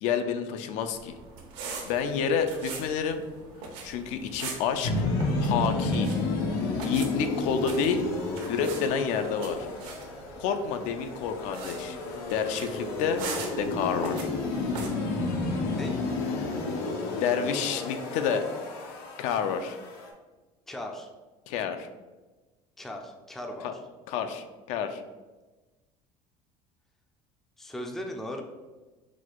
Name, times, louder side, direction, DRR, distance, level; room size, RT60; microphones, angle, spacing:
voice 1, 0.0-1.1 1.9-3.2 3.8-4.9 5.4-6.1 6.8-8.1 8.5-9.7 10.4-12.0 12.3-13.3 13.6-14.3 16.4-16.6 17.2-18.5 19.2-19.8 21.5-21.9 24.1-25.0, left 7 dB, 65° left, 8 dB, 0.4 m, -29 dB
sound 1, 0.9-14.9, right 4 dB, 80° right, 0.9 m, -42 dB
sound 2, 4.8-20.1, left 2 dB, 90° left, 0.8 m, -31 dB
voice 2, 15.7-16.0 20.7-21.1 22.8-23.8 27.6-28.4, left 1 dB, 5° left, 3 dB, 0.3 m, -38 dB
4.0 x 2.3 x 4.5 m, 1.2 s
cardioid pair, 150°, 13 cm